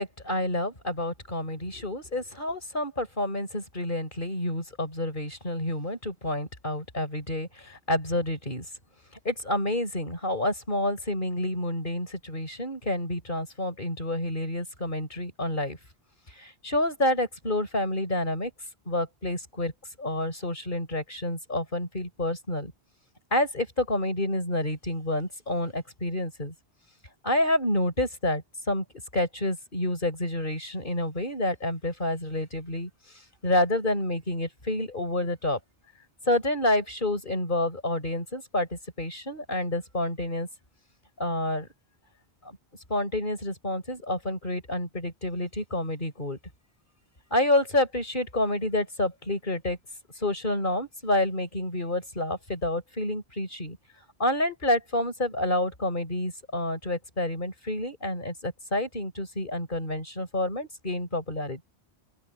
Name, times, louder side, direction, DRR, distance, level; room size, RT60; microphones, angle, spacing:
voice 1, 0.0-8.7 9.2-15.8 16.4-18.5 18.9-19.7 20.0-22.7 23.3-26.5 27.2-28.8 29.1-32.9 33.4-35.6 36.3-40.5 41.2-41.7 42.4-42.6 42.9-46.4 47.3-49.8 50.2-53.8 54.2-61.7, left 1 dB, 50° left, 5.7 m, -29 dB
open air
omnidirectional pair, 1.1 m